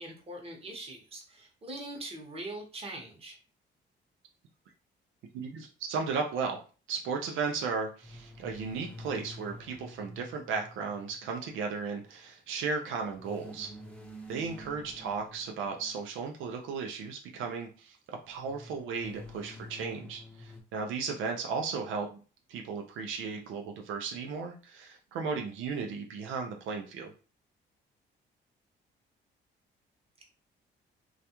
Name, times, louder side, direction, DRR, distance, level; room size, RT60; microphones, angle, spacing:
voice 1, 0.0-3.4, right 1 dB, 30° right, 0 dB, 0.9 m, -42 dB
voice 2, 5.3-6.6 6.9-13.7 14.3-18.0 18.3-22.2 22.5-27.1, right 5 dB, 80° right, 2 dB, 0.4 m, -35 dB
sound 1, 8.0-11.6 13.2-16.3 18.4-20.6, equal, 5° left, 0.7 m, -48 dB
2.3 x 2.1 x 2.8 m, 0.36 s
cardioid pair, 90°, 20 cm